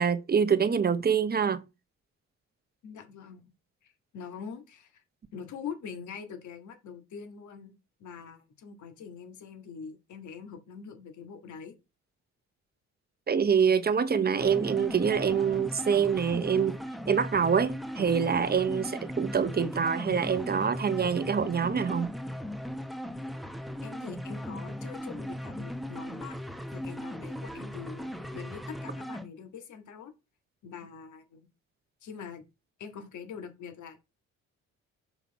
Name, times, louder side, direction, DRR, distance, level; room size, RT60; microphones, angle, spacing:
voice 1, 0.0-1.6 13.3-16.8 17.1-22.1, right 7 dB, 30° right, 0.9 m, -25 dB
voice 2, 2.8-3.5 3.8-5.0 5.3-11.8 23.8-26.4 26.7-30.1 30.6-31.5 32.0-32.4 32.8-34.0, left 6 dB, 70° left, 1.9 m, -44 dB
sound 1, 14.4-29.3, equal, ahead, 0.9 m, -38 dB
6.0 x 5.9 x 4.1 m
cardioid pair, 90°, 30 cm